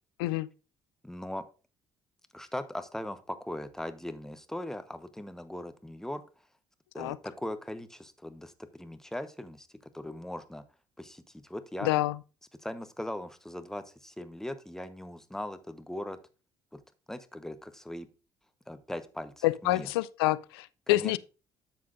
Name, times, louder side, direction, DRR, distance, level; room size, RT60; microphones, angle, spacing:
voice 1, 1.0-1.4 2.3-6.2 6.9-9.7 9.9-10.6 11.0-11.9 12.6-16.2 16.7-16.8 17.1-18.1 18.7-19.9 20.9-21.2, left 1 dB, 5° left, 1.0 m, -39 dB
voice 2, 11.8-12.2 19.4-21.2, left 18 dB, 80° left, 0.4 m, -27 dB
10.5 x 7.3 x 2.5 m
hypercardioid pair, 55°, 13 cm